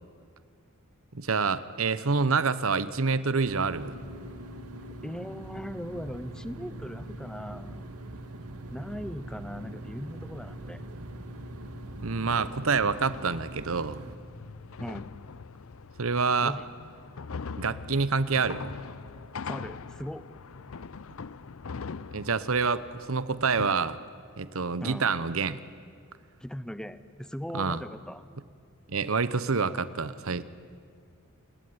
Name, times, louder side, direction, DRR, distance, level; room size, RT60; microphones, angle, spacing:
voice 1, 1.1-4.0 12.0-14.0 16.0-16.6 17.6-18.7 22.1-24.0 24.4-25.6 27.5-27.8 28.9-30.4, right 4 dB, 65° right, 15 dB, 1.0 m, -27 dB
sound 1, 3.4-14.2, right 1 dB, 90° right, 2.3 m, -42 dB
voice 2, 5.0-7.9 8.7-10.8 14.8-15.1 16.4-16.7 19.5-20.2 24.8-25.1 26.4-28.3, equal, 5° left, 13 dB, 0.9 m, -39 dB
sound 2, 12.3-23.7, left 5 dB, 65° left, 0.6 m, -42 dB
28.5 x 20.0 x 9.5 m, 2.3 s
head